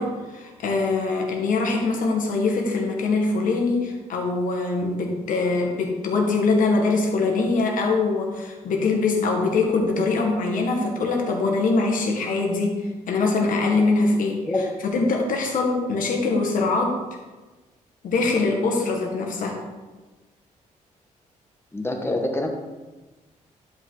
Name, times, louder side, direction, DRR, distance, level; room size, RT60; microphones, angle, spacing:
voice 1, 0.0-14.4 14.8-17.0 18.0-19.6, left 3 dB, 75° left, 1 dB, 1.7 m, -23 dB
voice 2, 21.7-22.5, left 2 dB, 15° left, 2 dB, 1.3 m, -25 dB
11.0 x 5.4 x 3.9 m, 1.2 s
cardioid pair, 100°, 14 cm